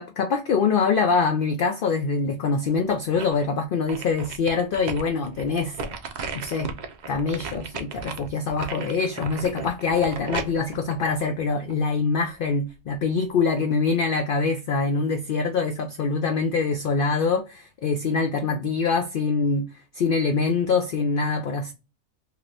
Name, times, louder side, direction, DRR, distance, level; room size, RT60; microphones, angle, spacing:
voice 1, 0.0-5.8 6.3-6.7 7.1-19.6 19.9-21.7, left 4 dB, 70° left, 0.5 m, -24 dB
sound 1, 2.6-3.5 3.9-11.9 12.4-12.5, right 4 dB, 60° right, 0.4 m, -35 dB
2.9 x 2.5 x 3.2 m
omnidirectional pair, 1.4 m